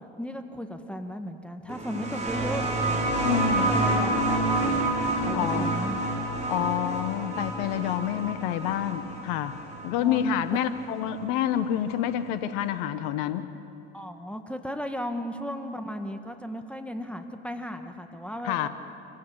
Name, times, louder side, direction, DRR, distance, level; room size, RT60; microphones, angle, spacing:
voice 1, 0.2-2.7 3.7-5.0 5.3-6.0 6.6-6.7 10.0-10.3 13.9-18.7, equal, 5° left, 6 dB, 1.8 m, -35 dB
sound 1, 1.7-11.0 12.1-12.2, right 2 dB, 20° right, 5.6 m, -28 dB
voice 2, 3.2-3.7 5.3-5.7 6.5-9.6 9.8-13.5 18.4-18.7, left 10 dB, 65° left, 12 dB, 1.1 m, -28 dB
26.0 x 15.5 x 8.7 m, 2.7 s
hypercardioid pair, 75°, 33 cm